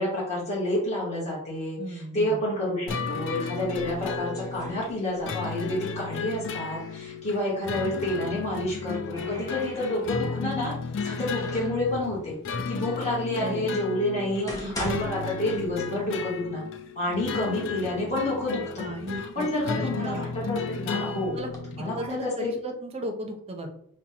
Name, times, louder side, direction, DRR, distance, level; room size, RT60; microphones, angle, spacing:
voice 1, 0.0-10.7 11.0-12.4 12.7-16.6 16.9-18.9 19.3-21.3 21.7-22.5, left 1 dB, 30° left, -7 dB, 1.3 m, -29 dB
voice 2, 1.8-2.4 13.4-13.7 14.4-15.0 18.8-20.2 21.3-21.5 21.8-23.7, right 1 dB, 30° right, 3 dB, 0.6 m, -35 dB
sound 1, 2.9-22.1, left 5 dB, 60° left, 0.4 m, -34 dB
sound 2, 3.6-5.5 5.8-7.2 8.3-10.4 10.9-11.9 12.6-12.7 13.4-13.5 14.1-16.1 16.4-16.5 17.3-17.4 17.7-18.4 18.9-20.6 21.2-21.6, left 1 dB, 15° left, 0.7 m, -42 dB
5.6 x 2.1 x 2.8 m, 0.69 s
head